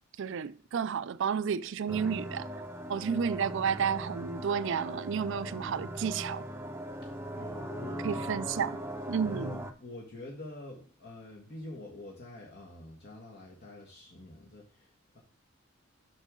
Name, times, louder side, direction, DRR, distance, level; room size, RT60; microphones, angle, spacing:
voice 1, 0.2-2.6 2.9-6.4 8.0-8.8 9.1-9.6, right 7 dB, 65° right, 0.4 m, -31 dB
sound 1, 1.9-9.7, right 1 dB, 10° right, 0.6 m, -39 dB
voice 2, 7.3-8.7 9.2-15.2, left 1 dB, 55° left, 1.5 m, -46 dB
10.5 x 6.1 x 3.7 m
head